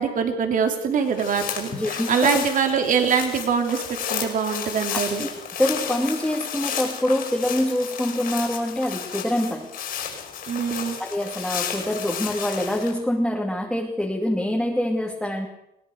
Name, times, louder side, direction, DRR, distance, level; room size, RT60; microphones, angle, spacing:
voice 1, 0.0-3.8 4.1-5.3 10.5-11.0, right 6 dB, 50° right, 5 dB, 3.8 m, -23 dB
sound 1, 1.0-12.9, left 8 dB, 60° left, 5.8 m, -32 dB
voice 2, 1.7-2.4 4.9-5.3 5.6-9.7 11.0-15.5, left 1 dB, 5° left, -1 dB, 2.7 m, -25 dB
22.0 x 18.0 x 6.5 m, 0.82 s
cardioid pair, 110°, 17 cm